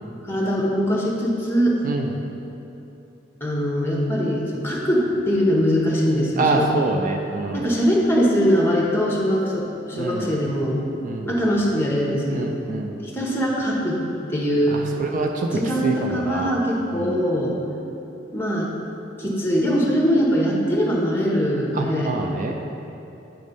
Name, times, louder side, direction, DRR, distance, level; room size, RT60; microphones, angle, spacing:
voice 1, 0.2-1.8 3.4-6.7 7.5-10.8 11.3-12.5 13.0-14.0 14.3-14.8 15.5-17.5 18.3-18.7 19.2-22.1, equal, 15° left, -3 dB, 0.9 m, -22 dB
voice 2, 1.8-2.1 6.4-7.7 9.9-10.3 11.0-11.3 12.3-13.0 14.7-16.6 16.9-17.2 21.7-22.5, right 3 dB, 45° right, 2 dB, 0.4 m, -26 dB
8.7 x 3.1 x 5.3 m, 2.9 s
head